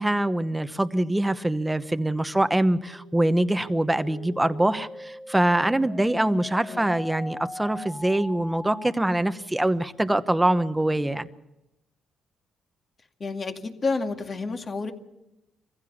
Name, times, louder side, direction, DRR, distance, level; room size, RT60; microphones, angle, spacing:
voice 1, 0.0-11.3, right 1 dB, 10° right, 11 dB, 1.0 m, -24 dB
sound 1, 2.9-8.9, left 1 dB, 10° left, 2.5 m, -41 dB
voice 2, 13.2-14.9, left 4 dB, 40° left, 5 dB, 2.2 m, -30 dB
23.5 x 15.5 x 7.2 m, 0.91 s
cardioid pair, 90°, 0 cm